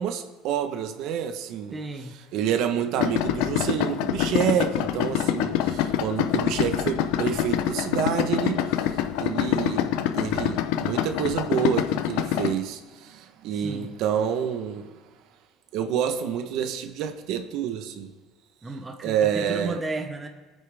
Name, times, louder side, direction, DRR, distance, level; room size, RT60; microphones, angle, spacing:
voice 1, 0.0-1.7 2.3-14.9 15.7-18.1 19.0-19.8, right 8 dB, 60° right, 1.0 m, -28 dB
voice 2, 1.7-2.2 13.5-13.9 18.6-20.3, right 3 dB, 10° right, 0.8 m, -34 dB
Idling, 3.0-12.5, left 10 dB, 80° left, 0.7 m, -25 dB
22.0 x 8.6 x 3.5 m
cardioid pair, 170°, 0 cm